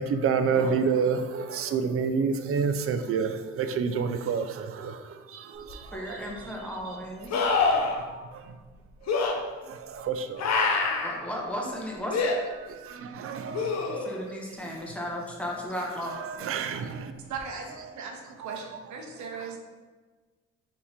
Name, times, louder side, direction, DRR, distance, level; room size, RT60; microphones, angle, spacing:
voice 1, 0.0-6.2 7.3-8.6 9.0-9.1 9.6-10.7 12.6-13.9 16.1-17.1 18.5-18.6, right 5 dB, 50° right, 9 dB, 0.4 m, -29 dB
sound 1, 5.7-5.8 7.3-8.0 9.1-9.3 10.4-11.1 12.1-12.4 13.5-14.2 17.4-17.5, left 4 dB, 60° left, 0.7 m, -25 dB
voice 2, 5.9-7.4 11.0-12.2 13.9-16.2, equal, 5° left, -2 dB, 0.9 m, -35 dB
voice 3, 17.3-19.6, right 5 dB, 70° right, 2 dB, 0.8 m, -38 dB
3.5 x 2.9 x 4.3 m, 1.4 s
cardioid pair, 90°, 30 cm